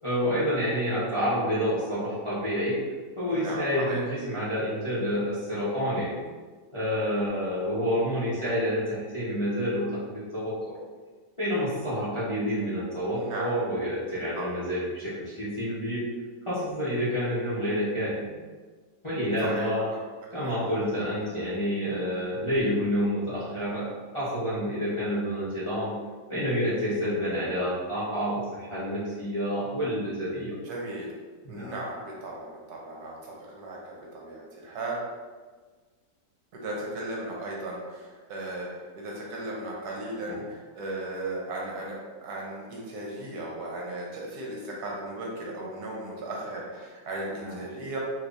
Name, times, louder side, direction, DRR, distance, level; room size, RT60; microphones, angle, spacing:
voice 1, 0.0-2.8 3.2-6.1 6.7-10.7 11.4-16.0 16.5-18.4 19.0-19.8 20.3-26.0 26.3-30.5 31.4-31.7 40.2-40.4 47.4-47.6, equal, 30° left, -11 dB, 0.6 m, -28 dB
voice 2, 3.3-4.0 13.1-13.5 14.4-14.5 19.4-20.0 20.3-20.6 21.0-21.1 30.6-31.1 31.5-35.0 36.5-48.0, right 2 dB, 70° right, -3 dB, 1.2 m, -36 dB
3.4 x 2.9 x 2.5 m, 1.4 s
omnidirectional pair, 1.8 m